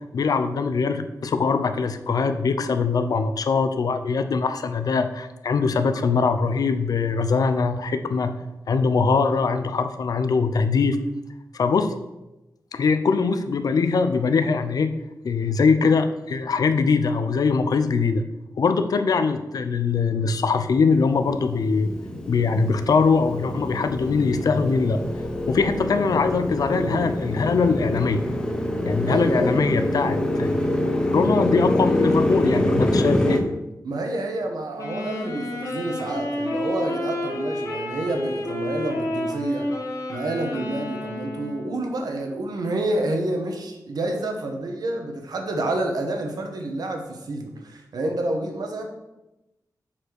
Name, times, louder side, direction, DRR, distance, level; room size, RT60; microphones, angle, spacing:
voice 1, 0.1-8.3 8.7-11.0 11.5-11.9 12.7-14.9 15.2-18.2 18.6-21.9 22.3-25.0 25.5-28.2 28.8-30.6 31.1-33.4, left 4 dB, 65° left, 9 dB, 0.6 m, -22 dB
Motorcycle, 20.7-33.4, left 1 dB, 10° left, 0.8 m, -25 dB
voice 2, 26.7-27.1 29.0-29.6 33.8-39.7 40.1-48.8, right 2 dB, 75° right, 3 dB, 1.3 m, -28 dB
Wind instrument woodwind instrument, 34.8-41.9, left 1 dB, 50° left, 1.8 m, -30 dB
7.5 x 4.4 x 6.4 m, 0.97 s
wide cardioid pair, 175°, 7 cm